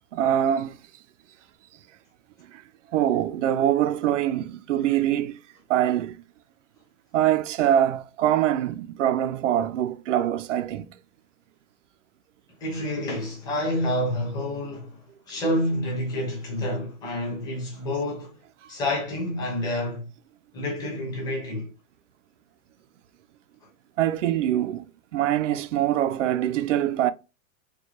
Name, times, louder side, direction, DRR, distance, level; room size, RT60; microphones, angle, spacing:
voice 1, 0.1-0.8 2.5-2.6 2.9-5.4 5.7-6.2 7.1-10.9 24.0-24.9 25.1-27.1, right 11 dB, 60° right, 0.5 m, -24 dB
voice 2, 12.6-15.0 15.3-18.3 18.7-20.1 20.5-21.7, left 1 dB, 10° left, 0.8 m, -28 dB
4.5 x 2.3 x 2.9 m
supercardioid pair, 175°, 42 cm